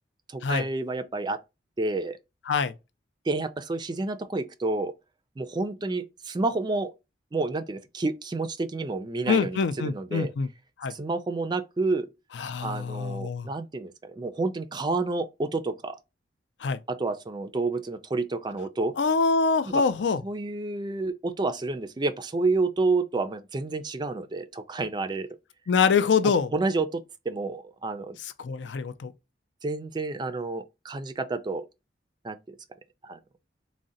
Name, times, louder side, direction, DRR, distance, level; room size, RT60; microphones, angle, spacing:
voice 1, 0.3-1.4 1.8-2.2 3.3-4.9 5.4-6.9 7.3-10.3 10.9-12.1 12.6-16.0 16.9-18.9 19.7-19.8 20.2-25.3 26.5-28.2 29.6-31.7 32.2-32.6 33.0-33.2, right 3 dB, 25° right, 0.3 m, -29 dB
voice 2, 9.3-10.5 10.8-10.9 12.4-13.5 16.6-16.8 19.0-20.2 25.7-26.5 28.2-29.1, left 5 dB, 80° left, 0.4 m, -25 dB
3.7 x 2.1 x 3.8 m
head